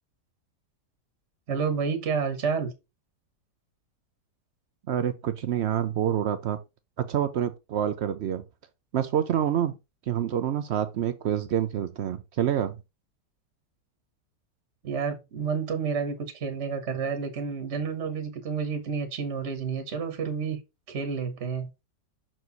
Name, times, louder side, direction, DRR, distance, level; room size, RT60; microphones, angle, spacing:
voice 1, 1.5-2.7 14.8-20.6 20.9-21.7, right 6 dB, 45° right, 1.3 m, -30 dB
voice 2, 4.9-6.6 7.0-8.4 8.9-9.8 10.1-12.8, right 10 dB, 85° right, 0.6 m, -27 dB
6.2 x 4.5 x 4.0 m
omnidirectional pair, 1.8 m